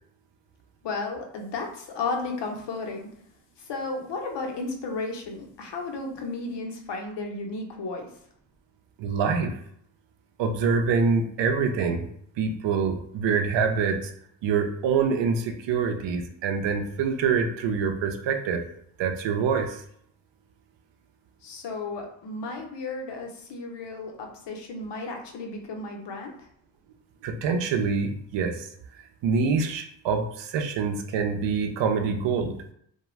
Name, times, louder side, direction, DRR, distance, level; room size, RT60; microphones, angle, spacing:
voice 1, 0.8-3.1 3.6-8.1 21.4-26.5, left 3 dB, 60° left, 2 dB, 0.8 m, -34 dB
voice 2, 9.0-9.6 10.4-12.1 12.4-14.1 14.4-18.6 19.0-19.8 27.2-28.7 29.2-32.6, right 5 dB, 65° right, 5 dB, 0.6 m, -25 dB
2.3 x 2.3 x 3.1 m, 0.67 s
supercardioid pair, 60°, 47 cm